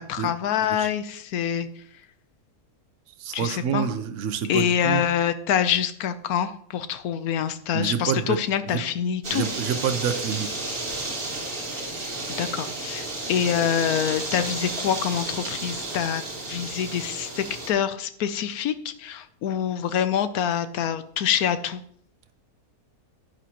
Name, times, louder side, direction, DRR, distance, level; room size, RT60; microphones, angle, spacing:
voice 1, 0.0-1.7 3.3-3.9 4.5-9.5 12.4-21.8, left 9 dB, 85° left, 11 dB, 1.2 m, -26 dB
voice 2, 3.2-5.0 7.7-8.4 8.7-8.8 9.3-10.5, right 8 dB, 60° right, 9 dB, 1.1 m, -27 dB
sound 1, 9.2-17.7, right 2 dB, 40° right, 1.7 m, -32 dB
11.0 x 9.2 x 2.9 m, 0.64 s
omnidirectional pair, 1.5 m